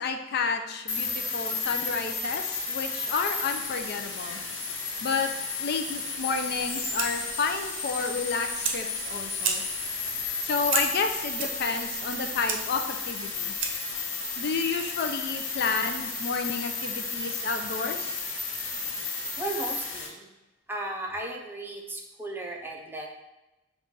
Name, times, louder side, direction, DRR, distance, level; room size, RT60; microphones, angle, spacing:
voice 1, 0.0-4.4 5.0-5.3 5.6-9.6 10.4-13.6 14.4-18.2, left 4 dB, 55° left, 6 dB, 0.4 m, -31 dB
sound 1, 0.9-20.1, left 4 dB, 80° left, 0.8 m, -33 dB
Fire, 6.5-14.0, right 6 dB, 70° right, 0.6 m, -35 dB
voice 2, 19.4-20.3 20.7-23.1, right 2 dB, 10° right, 0 dB, 0.5 m, -35 dB
5.3 x 2.4 x 3.7 m, 0.99 s
head